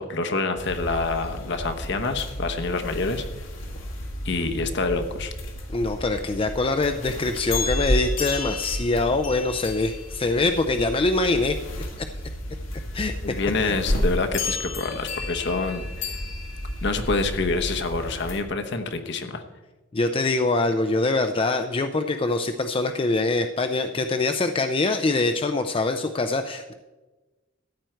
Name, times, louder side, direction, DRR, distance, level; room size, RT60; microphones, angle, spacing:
voice 1, 0.0-3.2 4.2-5.3 13.2-16.1 16.8-19.4, left 3 dB, 60° left, 6 dB, 1.0 m, -27 dB
sound 1, 0.6-18.4, left 1 dB, 75° left, 1.8 m, -31 dB
voice 2, 5.7-11.6 12.9-13.1 13.6-13.8 19.9-26.7, left 2 dB, 25° left, 7 dB, 0.4 m, -24 dB
14.0 x 9.2 x 4.5 m, 1.2 s
head